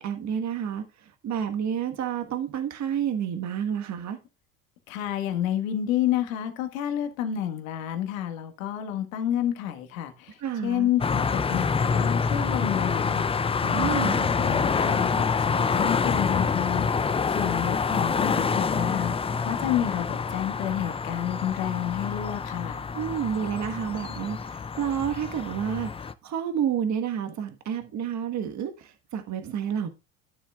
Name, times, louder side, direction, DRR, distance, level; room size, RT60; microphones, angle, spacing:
voice 1, 0.0-4.2 10.4-10.9 13.7-14.3 22.9-29.9, right 8 dB, 45° right, 1.4 m, -30 dB
voice 2, 4.9-13.2 13.6-19.2 19.4-22.9, left 11 dB, 80° left, 1.6 m, -30 dB
sound 1, 11.0-26.1, left 5 dB, 15° left, 0.5 m, -26 dB
13.5 x 7.1 x 2.4 m
hypercardioid pair, 70°, 40 cm